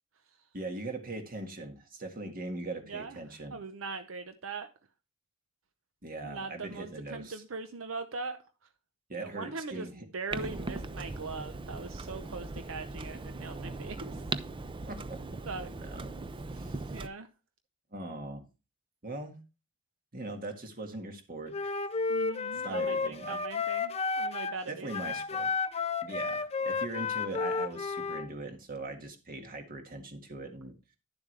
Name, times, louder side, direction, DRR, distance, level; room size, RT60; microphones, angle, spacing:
voice 1, 0.5-3.6 6.0-7.4 9.1-10.1 14.9-15.4 15.8-16.0 16.5-17.0 17.9-18.4 19.0-19.4 20.1-21.8 22.6-23.4 24.7-25.5 26.0-30.8, right 2 dB, 45° right, 5 dB, 1.7 m, -41 dB
voice 2, 3.5-4.7 6.2-8.4 9.1-14.2 15.5-15.7 16.9-17.3 22.1-25.2, right 4 dB, 85° right, 8 dB, 0.8 m, -40 dB
Clock, 10.3-17.1, right 3 dB, 25° right, 0.5 m, -39 dB
Wind instrument woodwind instrument, 21.5-24.6 24.9-28.3, left 4 dB, 30° left, 0.5 m, -32 dB
11.0 x 7.2 x 3.3 m, 0.31 s
head